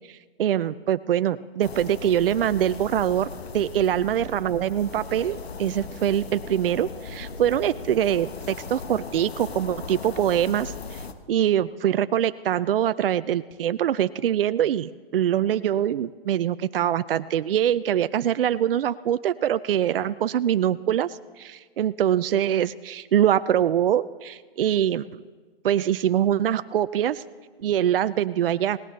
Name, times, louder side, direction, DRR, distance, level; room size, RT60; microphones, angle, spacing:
voice 1, 0.1-11.0 11.3-25.2 25.6-27.2 27.6-28.8, right 10 dB, 65° right, 13 dB, 0.5 m, -24 dB
sound 1, 1.6-11.1, left 4 dB, 85° left, 1.3 m, -38 dB
18.0 x 17.0 x 3.3 m, 1.4 s
hypercardioid pair, 160°, 30 cm